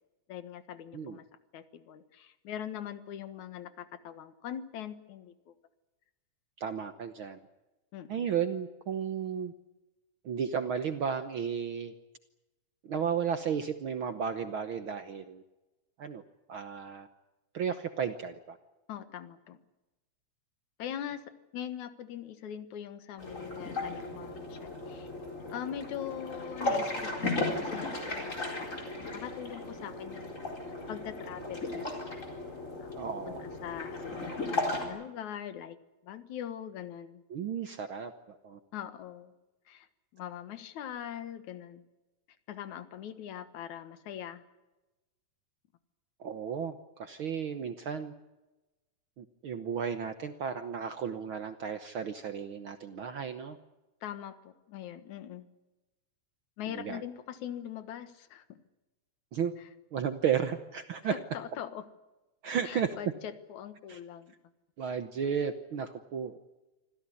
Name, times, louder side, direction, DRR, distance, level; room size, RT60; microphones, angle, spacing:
voice 1, 0.3-1.3 1.5-5.5 7.9-8.3 18.9-19.6 20.8-21.2 21.5-25.1 25.5-30.4 30.9-32.0 32.8-33.0 33.3-35.8 36.0-37.2 38.7-39.3 39.7-39.9 40.1-41.8 42.5-44.4 54.0-55.5 56.6-58.6 61.1-61.9 62.6-64.3, left 10 dB, 75° left, 11 dB, 2.8 m, -42 dB
voice 2, 6.6-7.4 8.1-9.5 10.2-11.9 12.8-15.4 16.0-16.2 16.5-17.1 17.5-18.6 32.9-33.4 37.3-38.6 46.2-48.1 49.2-53.6 56.7-57.0 59.3-59.5 59.9-61.2 62.4-62.9 63.9-64.0 64.8-66.4, right 7 dB, 60° right, 9 dB, 1.4 m, -34 dB
sound 1, 23.2-34.8, left 2 dB, 25° left, 4.7 m, -36 dB
26.0 x 15.5 x 9.9 m, 1.1 s
omnidirectional pair, 3.4 m